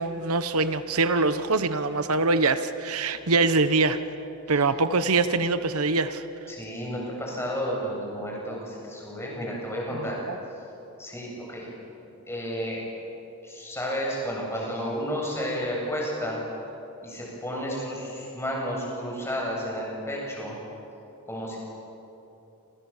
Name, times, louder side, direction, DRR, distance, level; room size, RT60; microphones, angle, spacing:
voice 1, 0.0-4.0 4.5-6.2 9.9-10.4, right 3 dB, 80° right, 11 dB, 1.1 m, -24 dB
voice 2, 6.5-10.2 11.0-11.7 12.2-12.8 13.4-16.4 17.0-20.5 21.3-21.6, equal, 10° left, -3 dB, 8.0 m, -32 dB
29.0 x 27.5 x 7.3 m, 2.9 s
head